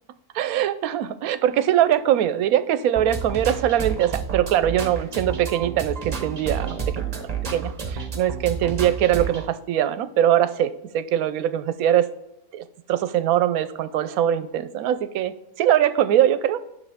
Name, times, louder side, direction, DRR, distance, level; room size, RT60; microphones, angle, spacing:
voice 1, 0.3-12.1 12.5-15.3 15.6-16.6, right 11 dB, 75° right, 13 dB, 1.0 m, -22 dB
sound 1, 2.9-9.4, right 6 dB, 30° right, 0.8 m, -30 dB
9.9 x 6.6 x 3.5 m, 0.86 s
omnidirectional pair, 1.6 m